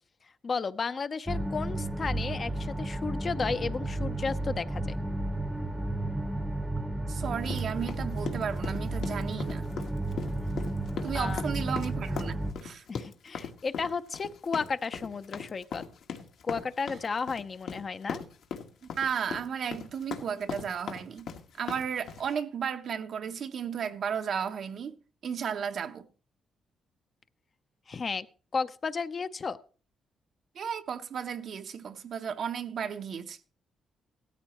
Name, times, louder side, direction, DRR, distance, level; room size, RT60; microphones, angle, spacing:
voice 1, 0.4-4.8 11.1-11.5 12.9-15.8 16.4-18.2 27.9-28.3 28.5-29.6, left 5 dB, 35° left, 0.6 m, -33 dB
sound 1, 1.3-12.5, right 1 dB, 10° right, 0.8 m, -32 dB
voice 2, 7.1-9.6 11.0-12.4 12.6-12.8 19.0-21.3 21.6-25.0 25.2-26.1 30.5-33.4, right 7 dB, 55° right, 0.8 m, -34 dB
sound 2, 7.4-22.3, left 7 dB, 75° left, 1.5 m, -39 dB
16.5 x 13.5 x 3.0 m
cardioid pair, 125°, 0 cm